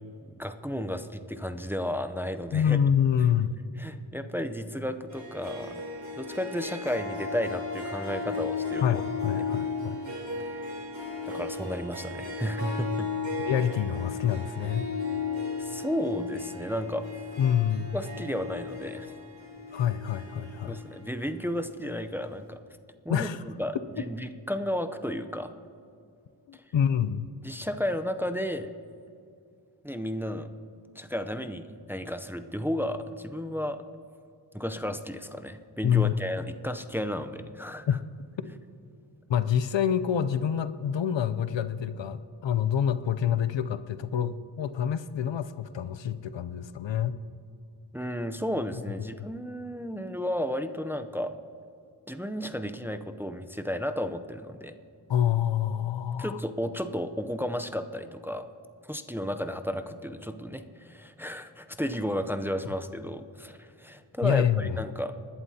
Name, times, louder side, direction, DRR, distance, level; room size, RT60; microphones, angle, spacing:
voice 1, 0.4-2.8 3.8-5.8 6.2-9.0 10.4-10.7 11.3-13.1 15.6-17.0 17.9-19.2 20.7-22.6 23.0-25.5 26.5-26.6 27.4-28.7 29.8-30.5 31.0-33.8 34.5-37.9 47.9-51.4 52.1-54.7 56.2-58.5 58.8-65.3, equal, 5° right, 8 dB, 0.6 m, -33 dB
voice 2, 2.5-3.6 8.8-10.0 13.4-14.8 17.4-18.0 19.7-20.8 23.1-23.4 24.0-24.1 26.5-27.3 35.8-36.2 37.9-38.0 39.3-47.2 55.1-56.4 64.2-64.8, left 9 dB, 65° left, 13 dB, 0.6 m, -27 dB
Harp, 5.1-21.9, left 4 dB, 35° right, 3.6 m, -35 dB
20.0 x 11.5 x 2.8 m, 2.5 s
cardioid pair, 45°, 47 cm